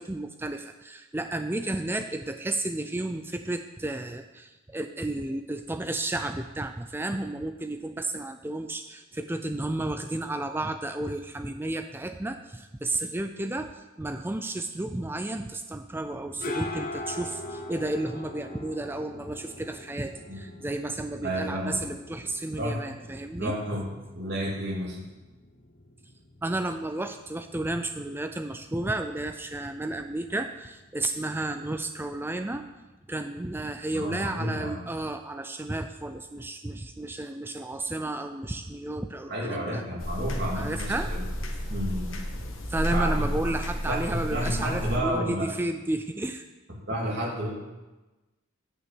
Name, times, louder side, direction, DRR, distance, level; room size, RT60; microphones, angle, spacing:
voice 1, 0.0-23.6 26.4-32.6 33.1-39.8 40.5-41.1 42.7-46.5, right 2 dB, 10° right, 8 dB, 0.4 m, -32 dB
sound 1, 16.0-33.5, left 2 dB, 40° left, 0.9 m, -44 dB
voice 2, 21.2-21.8 22.6-22.8 23.4-23.9 24.1-25.0 33.9-34.8 39.3-41.3 41.7-42.1 42.9-43.6 43.9-45.5 46.8-47.5, equal, 50° right, -3 dB, 3.1 m, -31 dB
sound 2, 40.0-45.0, equal, 70° left, 1.4 m, -31 dB
9.3 x 6.0 x 7.7 m, 1.1 s
head